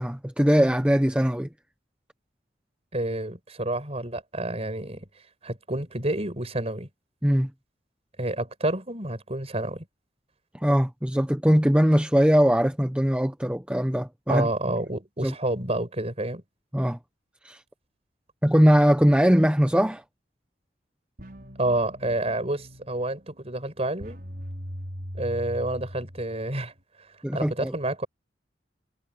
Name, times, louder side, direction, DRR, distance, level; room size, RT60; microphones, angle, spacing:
voice 1, 0.0-1.5 7.2-7.5 10.5-14.5 15.2-15.3 16.7-17.0 17.4-17.6 18.4-20.0 27.2-27.7, equal, 5° right, 1.0 m, -21 dB
voice 2, 2.9-5.1 5.4-6.9 8.2-9.9 14.3-16.4 21.6-24.2 25.2-26.7 27.3-28.1, right 1 dB, 35° right, 5.7 m, -29 dB
sound 1, 21.2-26.8, equal, 50° right, 6.1 m, -40 dB
head